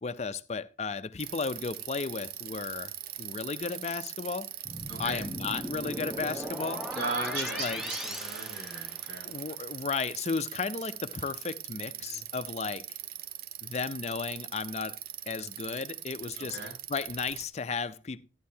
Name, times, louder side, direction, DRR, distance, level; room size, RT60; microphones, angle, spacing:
voice 1, 0.0-2.9 3.2-4.5 5.0-6.9 7.3-7.8 9.2-12.8 13.6-15.0 15.3-16.6 16.9-18.2, left 4 dB, 40° left, 0.5 m, -34 dB
Bicycle, 1.2-17.4, right 12 dB, 55° right, 0.5 m, -41 dB
sound 1, 4.7-9.4, equal, ahead, 0.9 m, -39 dB
voice 2, 4.9-5.3 6.9-9.3 12.0-12.2 16.4-16.7, right 2 dB, 80° right, 4.7 m, -37 dB
13.0 x 9.5 x 2.7 m
head